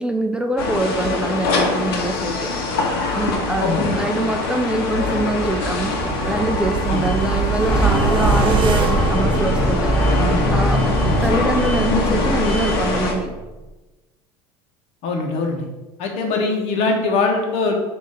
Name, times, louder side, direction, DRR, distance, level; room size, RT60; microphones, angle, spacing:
voice 1, 0.0-2.5 3.1-5.9 6.3-10.0 10.5-10.9 11.2-13.3, right 2 dB, 5° right, 5 dB, 0.5 m, -24 dB
sound 1, 0.6-13.1, left 3 dB, 85° left, 1.3 m, -23 dB
sound 2, 5.1-10.2 10.6-10.7, right 7 dB, 45° right, 0.7 m, -24 dB
sound 3, 7.7-13.6, right 1 dB, 10° left, 1.2 m, -22 dB
voice 2, 15.0-15.7 16.0-17.8, left 3 dB, 65° left, 2 dB, 1.4 m, -22 dB
6.1 x 3.1 x 5.7 m, 1.1 s
supercardioid pair, 105°, 12 cm